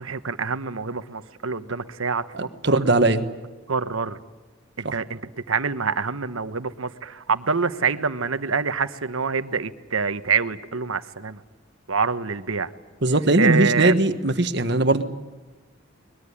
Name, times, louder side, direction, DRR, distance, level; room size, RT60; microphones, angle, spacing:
voice 1, 0.0-2.2 2.7-2.8 3.7-4.2 4.8-5.2 5.5-11.4 11.9-12.7 13.4-13.9, right 5 dB, 85° right, 11 dB, 1.2 m, -26 dB
voice 2, 2.3-3.2 4.8-4.9 13.0-15.0, right 2 dB, 55° right, 9 dB, 1.5 m, -20 dB
22.5 x 21.5 x 9.9 m, 1.2 s
head